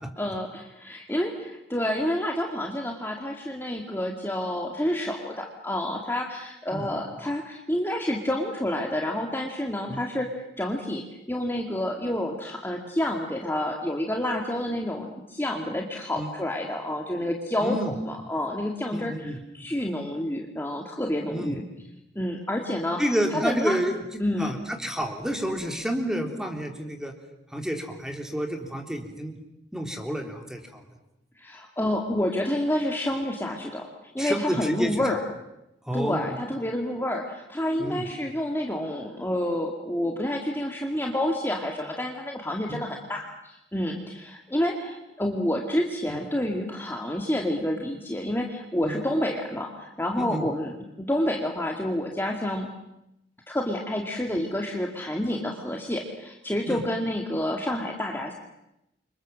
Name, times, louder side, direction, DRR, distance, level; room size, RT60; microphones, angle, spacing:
voice 1, 0.2-10.3 10.6-21.6 22.2-23.0 23.3-23.8 24.2-24.6 31.4-33.9 34.1-35.2 35.9-52.7 53.5-58.3, left 1 dB, 15° left, 1 dB, 2.2 m, -29 dB
voice 2, 17.6-17.9 18.9-19.4 21.3-21.5 23.0-23.9 24.4-27.1 27.5-29.3 29.7-30.8 34.2-34.9 35.9-36.4 37.8-38.1 42.7-42.8 46.1-46.2 48.8-49.0 50.2-50.4 56.7-56.8, equal, 5° right, 4 dB, 3.5 m, -29 dB
29.5 x 25.5 x 7.6 m, 0.87 s
head